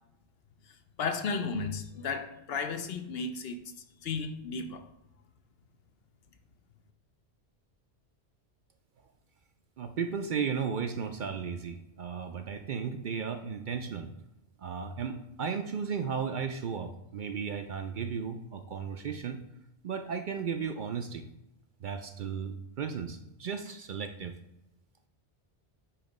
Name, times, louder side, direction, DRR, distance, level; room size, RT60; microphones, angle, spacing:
voice 1, 1.0-3.6 4.0-4.8, left 4 dB, 65° left, 0.8 m, -34 dB
voice 2, 9.8-14.1 14.6-19.4 19.8-21.2 21.8-24.3, right 6 dB, 60° right, 0.6 m, -35 dB
8.7 x 2.9 x 5.2 m
omnidirectional pair, 1.1 m